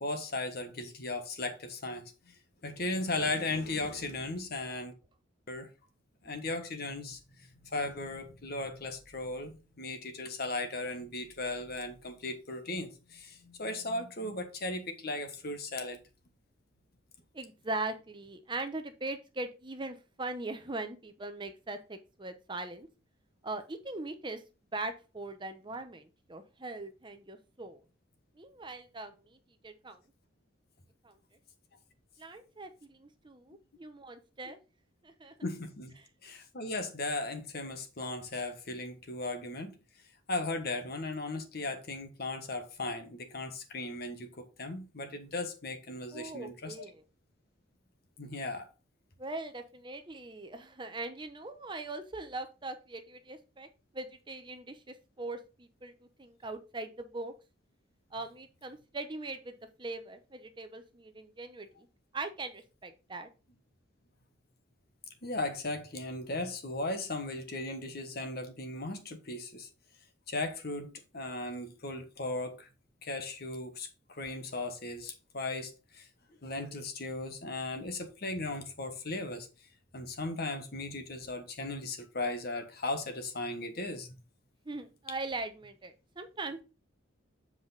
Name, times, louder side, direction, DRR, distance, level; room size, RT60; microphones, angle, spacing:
voice 1, 0.0-2.3 2.6-4.9 5.5-5.7 6.2-16.0 35.4-35.9 36.2-39.7 40.3-46.8 48.2-48.7 65.2-69.7 70.3-72.7 73.0-76.1 76.4-79.5 79.9-84.1, left 2 dB, 50° left, 1.3 m, -37 dB
voice 2, 17.3-22.9 23.4-24.4 24.7-27.8 28.4-29.4 29.6-30.0 31.0-31.1 32.2-34.6 35.0-35.3 36.0-36.1 46.1-47.0 49.2-53.7 53.9-55.9 56.2-57.3 58.1-61.9 62.1-63.3 84.6-86.6, right 2 dB, 25° right, 0.8 m, -41 dB
7.9 x 4.9 x 4.0 m
head